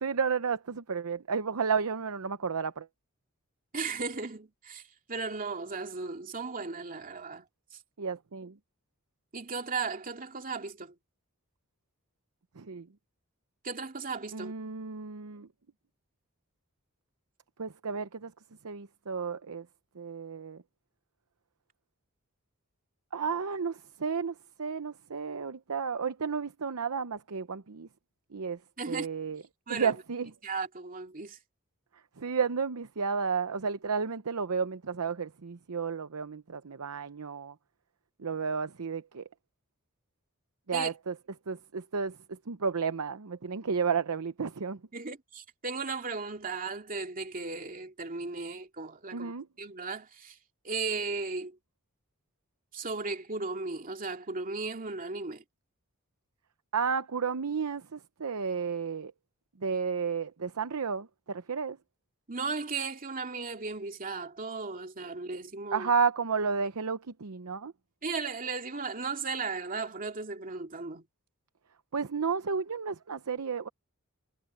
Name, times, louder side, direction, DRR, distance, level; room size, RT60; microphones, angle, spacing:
voice 1, 0.0-2.9 8.0-8.5 12.6-12.9 14.3-15.5 17.6-18.3 18.6-19.7 20.0-20.6 23.1-27.9 28.3-28.6 28.9-29.4 29.7-30.3 32.2-37.5 38.2-39.2 40.7-41.1 41.5-44.8 49.1-49.4 56.7-59.1 59.6-61.8 65.7-67.7 71.9-73.7, right 5 dB, 90° right, 0.7 m, -32 dB
voice 2, 3.7-4.8 5.1-7.5 7.7-7.8 9.3-10.9 13.6-14.5 28.8-29.1 29.7-29.9 30.4-31.4 40.7-40.9 44.9-49.3 49.6-50.4 50.6-51.6 52.7-55.4 62.3-65.9 68.0-71.0, right 4 dB, 40° right, 2.5 m, -36 dB
head